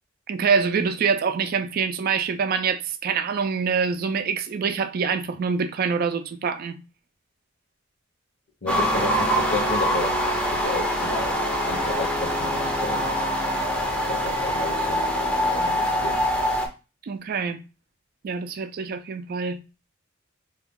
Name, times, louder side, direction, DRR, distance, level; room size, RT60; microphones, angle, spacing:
voice 1, 0.3-6.8 17.0-17.6 18.2-19.6, right 5 dB, 50° right, 0.3 m, -25 dB
voice 2, 8.6-13.1 14.1-15.1 15.5-16.3, left 2 dB, 55° left, 0.9 m, -32 dB
sound 1, 8.7-16.7, equal, 5° left, 0.5 m, -24 dB
2.8 x 2.3 x 3.5 m
head